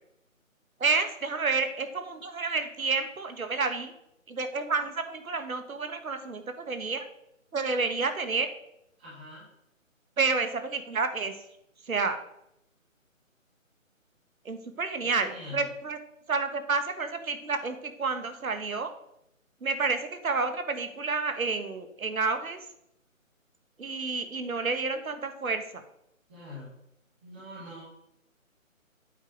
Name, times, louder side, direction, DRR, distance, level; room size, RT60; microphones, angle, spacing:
voice 1, 0.8-3.9 4.3-7.1 7.5-8.5 10.2-11.4 11.8-12.2 14.4-16.0 16.3-18.9 19.6-22.6 23.8-25.8, right 4 dB, 85° right, 8 dB, 1.4 m, -30 dB
voice 2, 9.0-9.5 15.0-15.6 26.3-26.7 27.2-27.8, left 2 dB, 10° right, -7 dB, 1.3 m, -44 dB
8.7 x 4.8 x 5.2 m, 0.78 s
hypercardioid pair, 175°, 41 cm